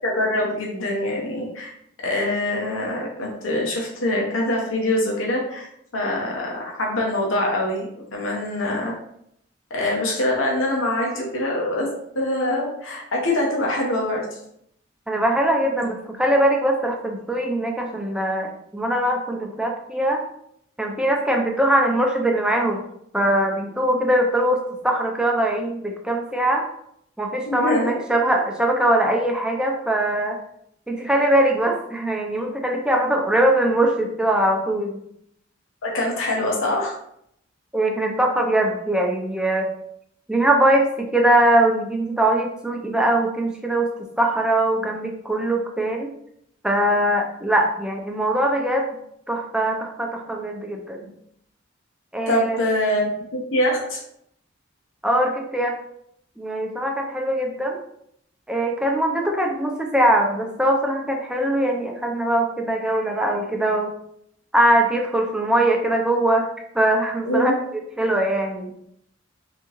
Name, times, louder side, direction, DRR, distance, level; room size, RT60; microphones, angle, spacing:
voice 1, 0.0-1.7 2.0-5.7 5.9-7.9 8.1-8.9 9.7-11.9 12.1-14.3 27.5-27.8 35.8-36.9 52.3-54.0 67.2-67.5, left 1 dB, 80° left, -2 dB, 0.9 m, -24 dB
voice 2, 15.1-20.2 20.8-22.8 23.1-26.6 27.2-30.4 30.9-35.0 37.7-39.7 40.3-43.9 44.2-46.1 46.6-48.9 49.3-51.1 52.1-52.6 55.0-55.7 56.4-57.8 58.5-63.9 64.5-66.5 66.7-67.5 68.0-68.7, right 1 dB, 5° right, 1 dB, 0.5 m, -21 dB
3.6 x 3.5 x 3.0 m, 0.73 s
head